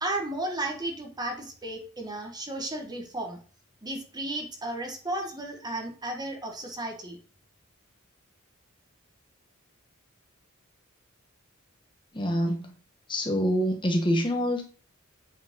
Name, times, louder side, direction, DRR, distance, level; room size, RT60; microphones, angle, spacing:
voice 1, 0.0-3.4 3.8-7.2, right 1 dB, 20° right, 3 dB, 1.3 m, -34 dB
voice 2, 12.1-12.7 13.1-14.6, equal, 20° left, 3 dB, 1.1 m, -25 dB
8.3 x 5.1 x 3.7 m, 0.40 s
head